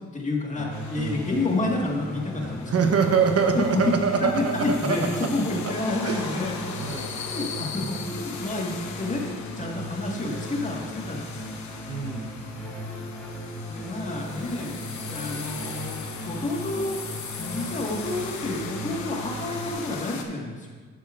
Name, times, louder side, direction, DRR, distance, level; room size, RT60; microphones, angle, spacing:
voice 1, 0.1-2.9 3.5-6.7 7.1-9.2 9.6-11.4 13.7-16.9 17.4-20.7, left 2 dB, 25° left, -1 dB, 1.7 m, -29 dB
sound 1, 0.5-19.7, equal, ahead, 2.7 m, -38 dB
sound 2, 0.7-20.2, left 5 dB, 70° left, 1.0 m, -39 dB
voice 2, 2.4-5.0 6.0-6.3 6.8-7.1 11.9-12.3, right 6 dB, 55° right, 4 dB, 0.9 m, -24 dB
10.5 x 8.5 x 2.5 m, 1.5 s
cardioid pair, 90°, 30 cm